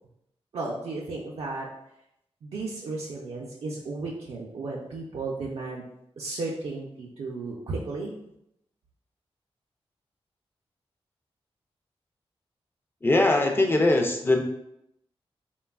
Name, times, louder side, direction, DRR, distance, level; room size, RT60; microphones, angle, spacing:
voice 1, 0.5-1.7 2.4-5.8 6.2-8.1, right 3 dB, 70° right, -3 dB, 0.4 m, -34 dB
voice 2, 13.0-14.4, left 2 dB, 20° left, 3 dB, 0.4 m, -21 dB
3.2 x 2.2 x 2.3 m, 0.80 s
cardioid pair, 75°, 11 cm